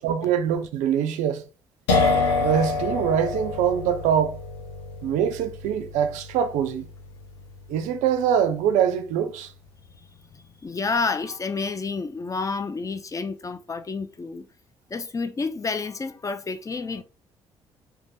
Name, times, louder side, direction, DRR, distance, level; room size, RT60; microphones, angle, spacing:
voice 1, 0.0-1.4 2.4-4.4 5.0-6.9 7.7-9.5, right 9 dB, 65° right, 0.4 m, -24 dB
sound 1, 1.9-9.4, left 3 dB, 80° left, 0.7 m, -28 dB
voice 2, 10.0-14.5 14.9-17.0, left 4 dB, 25° left, 0.4 m, -30 dB
2.5 x 2.3 x 3.0 m
hypercardioid pair, 45°, 13 cm